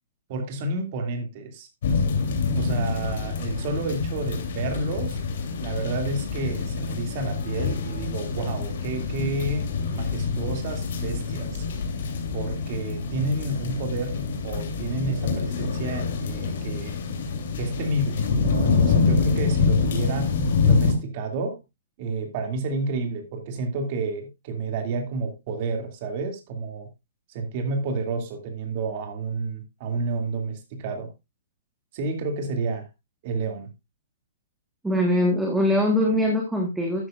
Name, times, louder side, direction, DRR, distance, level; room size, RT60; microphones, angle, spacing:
voice 1, 0.3-1.7 2.5-5.2 5.6-11.6 12.3-17.0 17.6-21.6 22.0-26.9 27.3-31.1 31.9-32.9 33.2-33.7, right 3 dB, 35° right, 2.5 m, -30 dB
sound 1, 1.8-20.9, left 5 dB, 55° left, 3.2 m, -26 dB
voice 2, 34.8-37.1, left 1 dB, 5° right, 1.5 m, -22 dB
12.5 x 9.7 x 2.5 m
hypercardioid pair, 170°, 0 cm